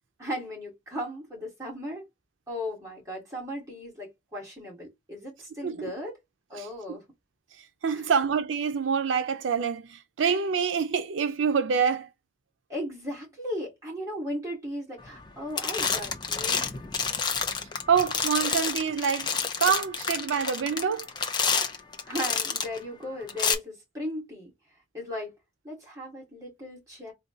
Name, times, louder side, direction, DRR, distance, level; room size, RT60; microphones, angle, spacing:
voice 1, 0.2-2.0 2.5-6.1 6.5-7.0 7.9-8.1 12.7-16.6 22.0-24.5 24.9-25.3 25.6-27.1, equal, 15° right, 2.1 m, -36 dB
voice 2, 6.6-7.0 7.8-12.1 17.9-21.1, right 6 dB, 90° right, 0.5 m, -26 dB
sound 1, 15.1-15.3 15.6-22.8 23.3-23.5, left 6 dB, 25° left, 0.5 m, -29 dB
3.9 x 2.3 x 3.8 m
head